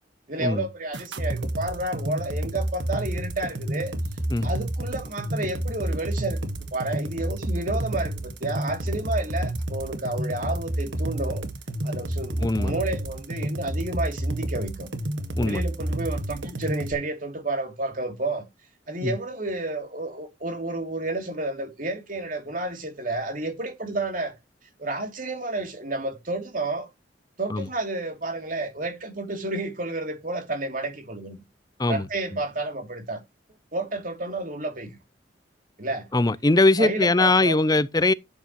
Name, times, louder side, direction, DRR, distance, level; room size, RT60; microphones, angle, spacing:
voice 1, 0.3-3.9 4.4-6.4 6.7-11.4 11.8-14.9 15.4-18.4 18.9-24.3 24.8-26.9 27.4-31.4 31.9-33.2 33.7-35.0 35.8-36.1 36.8-37.6, right 2 dB, 45° right, 2.9 m, -31 dB
sound 1, 0.9-16.9, right 1 dB, 75° right, 1.7 m, -29 dB
voice 2, 12.4-12.8 15.4-15.6 19.0-19.2 27.5-27.7 31.8-32.4 36.1-38.1, left 2 dB, 20° left, 0.6 m, -21 dB
12.0 x 8.4 x 3.1 m
head